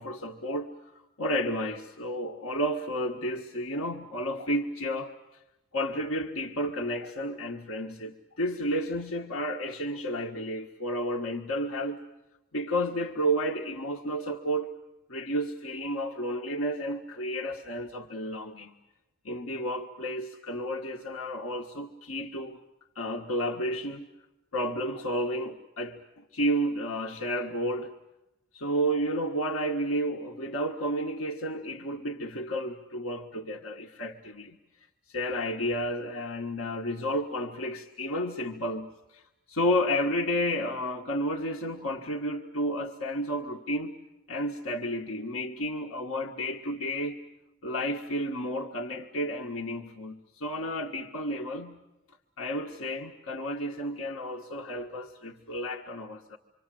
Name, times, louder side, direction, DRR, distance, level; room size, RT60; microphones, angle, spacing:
voice 1, 0.0-5.1 5.7-12.0 12.5-14.8 15.1-18.7 19.2-22.6 22.9-24.1 24.5-27.9 28.5-34.6 35.1-39.2 39.5-44.0 44.3-47.3 47.6-51.8 52.4-56.4, equal, 90° left, 1.6 m, -31 dB
27.0 x 24.5 x 7.7 m
head